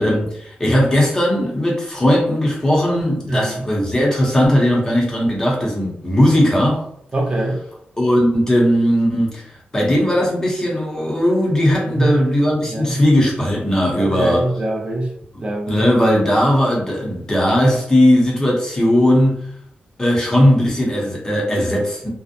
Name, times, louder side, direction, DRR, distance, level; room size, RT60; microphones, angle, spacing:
voice 1, 0.0-6.8 8.0-9.4 9.7-14.5 15.7-19.4 20.0-22.1, equal, 15° left, -3 dB, 0.7 m, -17 dB
voice 2, 3.3-3.6 7.1-7.6 11.9-13.0 14.0-15.1 15.4-15.8, right 1 dB, 30° right, 0 dB, 0.4 m, -24 dB
2.6 x 2.0 x 2.5 m, 0.71 s
wide cardioid pair, 160°, 4 cm